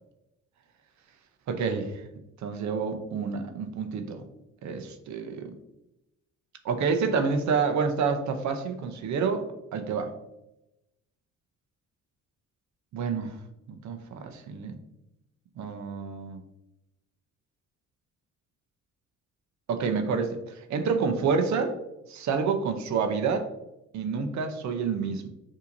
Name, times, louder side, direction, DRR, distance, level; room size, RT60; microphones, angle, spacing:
voice 1, 1.5-2.0 2.4-4.2 4.6-5.5 6.6-10.1 12.9-13.3 13.7-14.8 15.6-16.4 19.7-21.8 22.1-23.5 23.9-25.3, right 5 dB, 65° right, 7 dB, 0.6 m, -28 dB
5.6 x 2.8 x 2.6 m, 0.91 s
cardioid pair, 90°, 30 cm